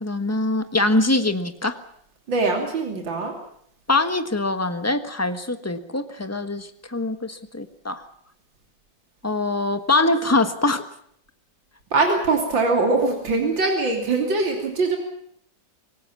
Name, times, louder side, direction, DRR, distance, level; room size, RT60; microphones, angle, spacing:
voice 1, 0.0-1.8 3.9-8.0 9.2-10.8, left 2 dB, 10° left, 9 dB, 1.1 m, -23 dB
voice 2, 2.3-3.3 11.9-15.0, right 3 dB, 75° right, 2 dB, 3.7 m, -22 dB
26.0 x 18.5 x 7.2 m, 0.68 s
omnidirectional pair, 2.1 m